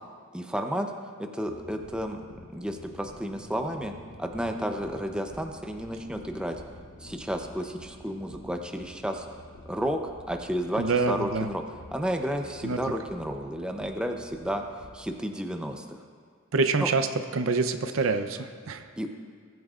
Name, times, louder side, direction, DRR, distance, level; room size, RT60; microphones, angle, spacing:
voice 1, 0.3-0.9 1.2-3.9 4.2-6.6 7.0-9.3 9.7-10.0 10.3-11.6 11.9-14.6 14.9-16.0 16.8-16.9 19.0-19.1, equal, 5° right, 4 dB, 0.6 m, -32 dB
sound 1, 1.4-14.9, left 1 dB, 65° left, 1.2 m, -49 dB
voice 2, 10.8-11.5 12.6-12.8 16.5-17.1 17.3-18.9, right 4 dB, 70° right, 9 dB, 0.6 m, -26 dB
20.5 x 9.2 x 2.5 m, 2.1 s
head